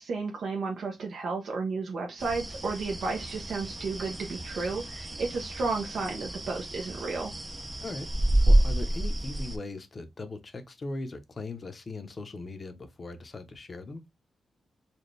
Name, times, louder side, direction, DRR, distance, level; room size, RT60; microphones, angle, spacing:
voice 1, 0.0-7.3, right 4 dB, 70° right, 0.8 m, -33 dB
sound 1, 2.2-9.6, right 1 dB, 15° right, 0.5 m, -29 dB
voice 2, 8.5-14.0, left 2 dB, 35° left, 0.7 m, -39 dB
4.2 x 2.3 x 3.2 m
wide cardioid pair, 135°, 0 cm